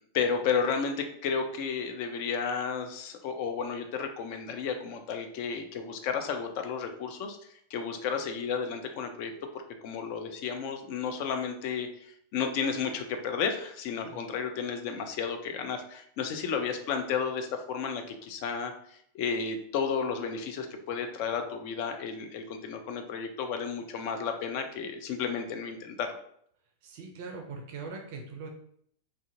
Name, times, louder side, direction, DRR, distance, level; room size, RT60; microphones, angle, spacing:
voice 1, 0.1-9.3 9.8-26.1, left 6 dB, 45° left, 6 dB, 0.3 m, -32 dB
voice 2, 26.8-28.5, right 4 dB, 50° right, 2 dB, 0.4 m, -41 dB
2.5 x 2.0 x 2.5 m, 0.67 s
figure-of-eight pair, 90°, 0 cm